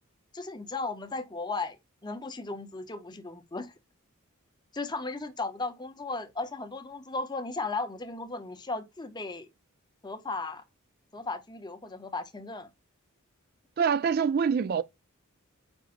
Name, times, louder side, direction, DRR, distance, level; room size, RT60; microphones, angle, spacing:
voice 1, 0.3-3.7 4.7-9.5 10.0-10.6 11.1-12.7, left 3 dB, 20° left, 0.7 m, -36 dB
voice 2, 13.8-14.8, right 6 dB, 45° right, 0.3 m, -25 dB
7.9 x 5.2 x 2.5 m
head